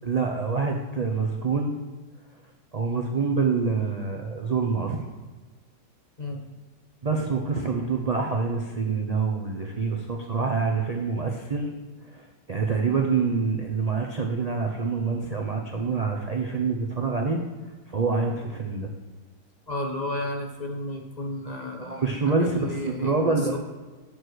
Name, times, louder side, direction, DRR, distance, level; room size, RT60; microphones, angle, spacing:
voice 1, 0.0-1.7 2.7-5.0 7.0-11.7 12.0-17.4 17.9-18.9 21.8-23.6, right 4 dB, 65° right, 1 dB, 0.4 m, -26 dB
voice 2, 19.7-23.6, left 1 dB, 30° left, 1 dB, 0.8 m, -33 dB
8.6 x 4.8 x 6.3 m, 1.3 s
omnidirectional pair, 1.9 m